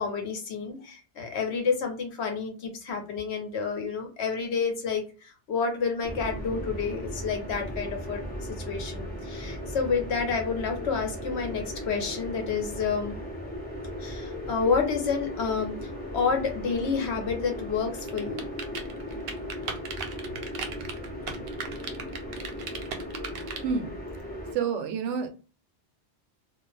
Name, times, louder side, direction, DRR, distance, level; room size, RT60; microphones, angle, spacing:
voice 1, 0.0-13.2 14.0-18.4 20.3-20.4, left 5 dB, 70° left, 3 dB, 1.0 m, -29 dB
sound 1, 6.0-24.5, equal, 10° left, 0.8 m, -37 dB
sound 2, 18.0-23.6, right 5 dB, 65° right, 0.7 m, -36 dB
voice 2, 23.6-23.9 24.5-25.3, right 6 dB, 90° right, 7 dB, 0.9 m, -28 dB
2.4 x 2.1 x 3.2 m, 0.34 s
omnidirectional pair, 1.2 m